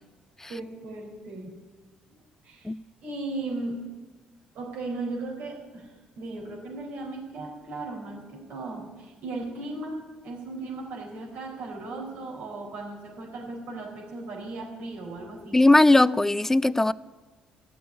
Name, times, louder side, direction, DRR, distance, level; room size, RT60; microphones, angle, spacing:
voice 1, 0.5-1.5 2.4-2.7 3.0-3.8 4.5-15.6, right 2 dB, 75° right, 4.4 m, -36 dB
voice 2, 15.5-16.9, left 2 dB, 15° left, 0.4 m, -18 dB
13.0 x 7.1 x 9.6 m
supercardioid pair, 65°, 3 cm